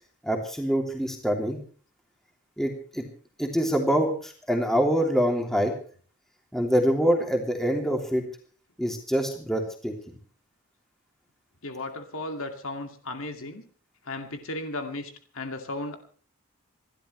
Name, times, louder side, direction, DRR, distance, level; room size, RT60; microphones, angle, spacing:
voice 1, 0.2-1.6 2.6-3.0 3.4-5.7 6.5-8.2 8.8-9.9, equal, ahead, 1 dB, 3.0 m, -25 dB
voice 2, 11.6-13.6 14.1-16.0, left 2 dB, 65° left, 5 dB, 2.3 m, -35 dB
27.5 x 12.5 x 3.3 m, 0.44 s
head